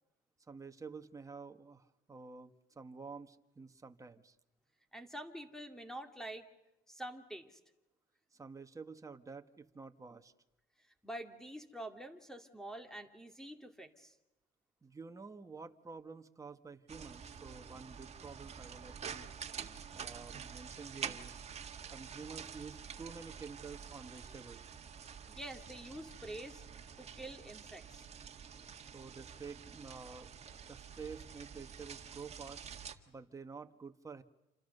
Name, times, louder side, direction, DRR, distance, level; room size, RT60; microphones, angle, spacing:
voice 1, 0.5-4.4 8.3-10.3 14.8-19.3 19.9-21.5 21.9-24.7 28.9-30.3 30.7-32.6 33.1-34.2, right 4 dB, 20° right, 6 dB, 1.6 m, -50 dB
voice 2, 4.9-6.5 6.9-7.6 11.0-14.1 25.3-26.6 27.0-28.1, right 1 dB, 5° left, 6 dB, 2.4 m, -47 dB
sound 1, 16.9-33.0, right 7 dB, 40° right, 1.9 m, -48 dB
28.5 x 27.0 x 6.8 m, 0.97 s
cardioid pair, 110°, 17 cm